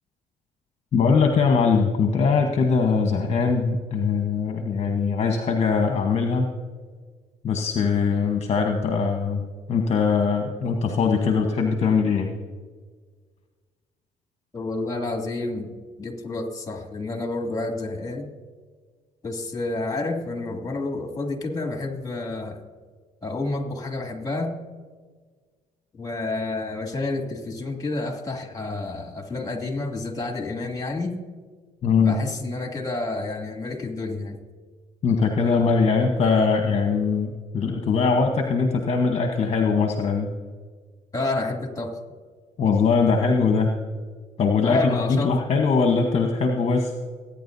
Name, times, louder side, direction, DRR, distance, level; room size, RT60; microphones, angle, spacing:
voice 1, 0.9-6.5 7.4-12.3 31.8-32.2 35.0-40.3 42.6-43.7 44.4-47.0, left 5 dB, 45° left, 4 dB, 1.2 m, -21 dB
voice 2, 14.5-15.7 16.0-18.3 19.2-22.6 23.2-24.6 25.9-31.2 32.0-34.4 41.1-42.0 44.6-45.4, left 2 dB, 25° left, 3 dB, 2.7 m, -29 dB
21.0 x 9.8 x 2.7 m, 1.5 s
supercardioid pair, 75°, 15 cm